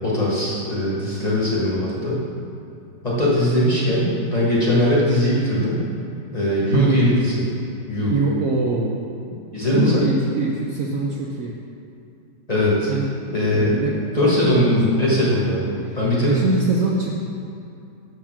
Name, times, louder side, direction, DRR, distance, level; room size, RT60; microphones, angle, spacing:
voice 1, 0.0-2.2 3.0-5.8 6.3-7.4 7.9-8.1 9.5-10.0 12.5-12.9 13.3-13.8 14.1-16.5, left 1 dB, 25° left, -6 dB, 1.4 m, -20 dB
voice 2, 6.7-7.1 8.1-9.0 9.3-9.4 9.7-11.6 12.9-13.1 13.5-15.0 15.8-17.1, right 3 dB, 65° right, -2 dB, 0.9 m, -24 dB
7.2 x 4.8 x 5.9 m, 2.7 s
omnidirectional pair, 1.9 m